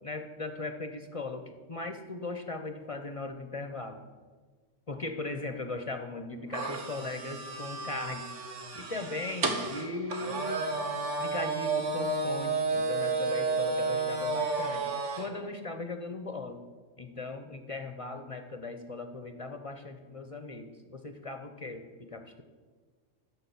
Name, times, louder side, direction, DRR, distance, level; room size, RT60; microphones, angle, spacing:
voice 1, 0.0-4.0 4.9-8.3 8.7-10.6 11.2-14.9 15.2-16.6 17.0-22.4, left 2 dB, 35° left, 7 dB, 0.6 m, -38 dB
sound 1, 6.5-15.3, right 3 dB, 75° right, 1.5 m, -32 dB
10.5 x 6.6 x 7.0 m, 1.5 s
omnidirectional pair, 1.3 m